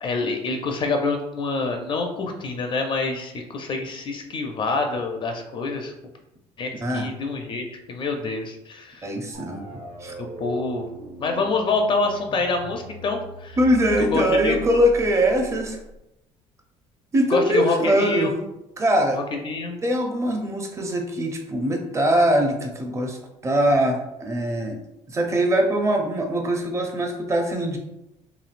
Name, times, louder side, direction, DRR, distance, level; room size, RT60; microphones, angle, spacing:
voice 1, 0.0-5.9 6.6-9.0 10.2-10.9 11.2-13.6 14.1-14.6 17.3-18.3 19.2-19.8, left 3 dB, 40° left, 3 dB, 0.4 m, -26 dB
voice 2, 9.0-10.1 13.6-15.8 17.1-18.4 18.8-19.2 19.8-23.2 23.4-24.8 25.1-27.8, equal, 25° right, 3 dB, 0.6 m, -22 dB
sound 1, 9.3-16.0, right 2 dB, 65° right, 0.9 m, -39 dB
3.1 x 2.6 x 2.4 m, 0.90 s
cardioid pair, 100°, 13 cm